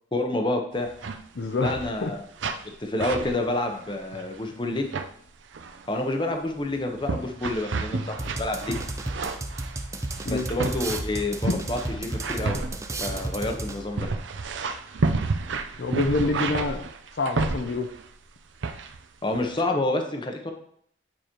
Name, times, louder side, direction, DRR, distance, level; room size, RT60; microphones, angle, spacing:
voice 1, 0.1-0.9 1.6-2.3 2.8-4.9 5.9-8.8 10.3-12.6 13.0-14.1 19.2-20.5, left 2 dB, 25° left, 4 dB, 0.7 m, -28 dB
sound 1, 0.8-1.2 1.4-2.1 2.4-2.7 3.0-4.4 4.7-5.1 5.5-5.9 6.5-18.1 18.6-19.0 19.3-19.6, right 3 dB, 75° right, 0.6 m, -31 dB
voice 2, 1.4-1.7 2.0-2.1 10.3-10.5 15.8-16.8 17.2-17.9, left 3 dB, 60° left, 6 dB, 0.6 m, -26 dB
sound 2, 8.2-14.0, right 2 dB, 15° right, 0.5 m, -33 dB
8.9 x 4.9 x 3.0 m, 0.64 s
head